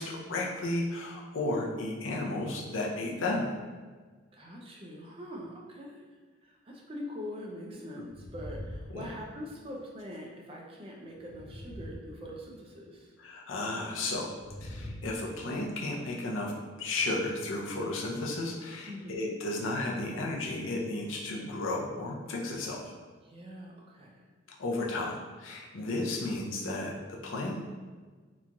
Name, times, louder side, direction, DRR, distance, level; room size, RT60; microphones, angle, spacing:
voice 1, 0.0-3.5 8.9-9.1 13.2-14.3 14.6-16.5 16.8-22.8 24.6-27.7, left 2 dB, 80° left, -1 dB, 0.5 m, -33 dB
voice 2, 4.3-6.0 6.4-13.1 18.9-19.2 23.2-24.2, left 1 dB, 30° right, -2 dB, 0.4 m, -43 dB
sound 1, 8.0-9.6 11.1-12.7 14.3-15.6, left 1 dB, 85° right, 0.9 m, -43 dB
2.9 x 2.3 x 2.5 m, 1.4 s
head